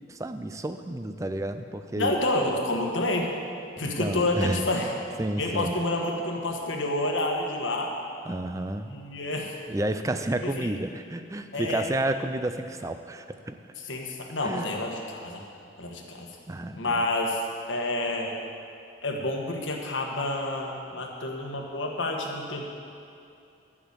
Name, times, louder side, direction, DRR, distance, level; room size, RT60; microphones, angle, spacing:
voice 1, 0.0-2.1 3.8-4.7 5.2-5.8 8.3-9.0 9.7-13.6 14.4-14.7 16.5-16.8, right 1 dB, 15° right, 9 dB, 0.4 m, -31 dB
voice 2, 2.0-3.3 3.8-4.9 5.4-7.9 8.9-9.6 10.4-10.7 11.5-11.9 13.8-15.4 15.8-16.3 16.8-17.4 17.7-18.3 19.0-22.7, left 2 dB, 80° left, 1 dB, 1.5 m, -29 dB
11.0 x 6.1 x 8.3 m, 2.6 s
head